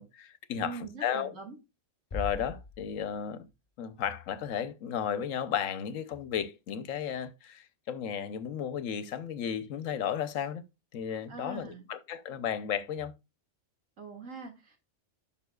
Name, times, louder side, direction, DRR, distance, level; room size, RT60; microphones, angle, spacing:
voice 1, 0.0-1.3 2.1-3.5 3.8-10.6 10.9-13.1, left 8 dB, 85° left, 1.2 m, -34 dB
voice 2, 0.6-1.6 11.3-11.9 14.0-14.8, right 4 dB, 85° right, 2.5 m, -43 dB
sound 1, 2.1-3.5, left 3 dB, 30° left, 1.4 m, -40 dB
11.0 x 5.6 x 2.3 m
omnidirectional pair, 1.3 m